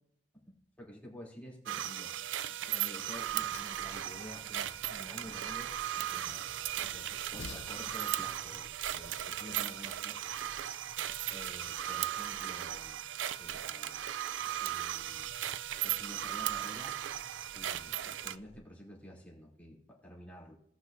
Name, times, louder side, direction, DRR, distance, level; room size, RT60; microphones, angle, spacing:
voice 1, 0.8-10.4 11.3-13.0 13.4-14.0 14.6-15.3 15.8-17.0 17.5-20.5, equal, 10° left, -3 dB, 2.8 m, -50 dB
sound 1, 1.7-18.4, right 12 dB, 85° right, 0.4 m, -37 dB
Train, 2.1-9.9, left 4 dB, 65° left, 0.5 m, -55 dB
sound 2, 3.1-18.6, equal, 35° right, 3.4 m, -59 dB
17.5 x 6.0 x 2.6 m, 0.68 s
head